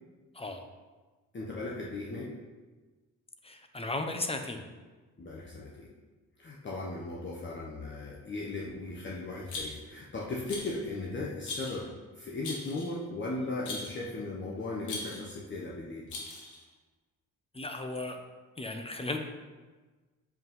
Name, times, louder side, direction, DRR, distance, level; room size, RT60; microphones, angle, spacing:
voice 1, 1.3-2.3 5.2-5.9 6.4-11.9 12.1-16.1, left 2 dB, 40° left, -4 dB, 1.3 m, -37 dB
voice 2, 3.4-4.6 17.5-18.2 18.6-19.2, left 2 dB, 20° left, 5 dB, 1.0 m, -35 dB
Rattle, 9.5-10.0 10.5-10.9 11.4-11.8 12.4-13.0 13.7-14.0 14.8-15.3 16.1-16.6, left 2 dB, 75° left, 2.1 m, -40 dB
7.4 x 5.5 x 5.6 m, 1.3 s
cardioid pair, 90°, 30 cm